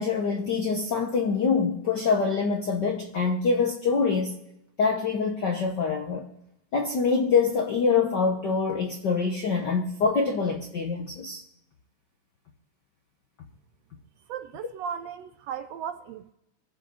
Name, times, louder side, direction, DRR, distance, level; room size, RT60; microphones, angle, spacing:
voice 1, 0.0-4.3 4.8-6.3 6.7-11.4, left 5 dB, 65° left, 1.0 m, -25 dB
voice 2, 14.3-16.3, right 8 dB, 75° right, 1.6 m, -36 dB
23.0 x 7.8 x 4.0 m
omnidirectional pair, 3.4 m